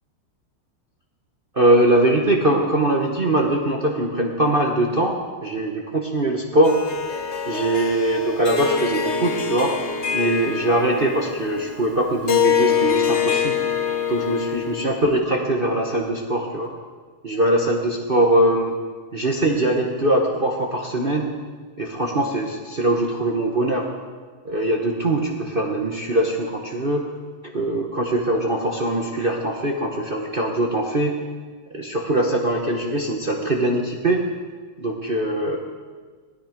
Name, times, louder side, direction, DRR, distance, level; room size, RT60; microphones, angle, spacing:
voice 1, 1.5-6.8 7.5-9.7 10.1-13.6 14.1-16.7 17.2-18.7 19.1-21.3 21.8-23.9 24.4-27.1 27.4-31.2 31.7-34.2 34.8-35.6, right 1 dB, 35° right, 0 dB, 1.0 m, -22 dB
Harp, 6.6-15.1, left 7 dB, 45° left, 1.0 m, -25 dB
17.5 x 13.0 x 5.1 m, 1.5 s
omnidirectional pair, 2.4 m